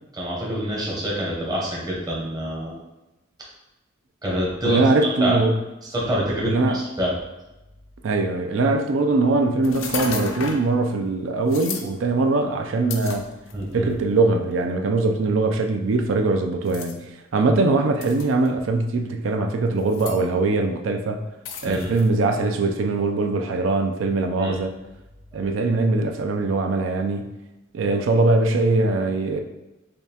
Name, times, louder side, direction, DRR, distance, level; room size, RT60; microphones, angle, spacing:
voice 1, 0.1-2.8 4.2-5.4 5.9-7.1 13.5-13.9 21.6-21.9 24.4-24.6, equal, 20° right, -4 dB, 0.8 m, -26 dB
voice 2, 4.6-5.6 6.4-6.9 8.0-13.3 13.7-17.0 17.3-21.2 21.6-24.7 25.3-27.3 27.7-29.4, right 3 dB, 70° right, 5 dB, 0.4 m, -21 dB
sound 1, 9.6-10.7 11.5-11.9 12.9-13.7 14.5-14.6 16.7-16.9 18.0-18.5 19.8-20.2 21.5-22.1, left 5 dB, 75° left, 0.5 m, -33 dB
5.1 x 2.2 x 2.8 m, 1.0 s
head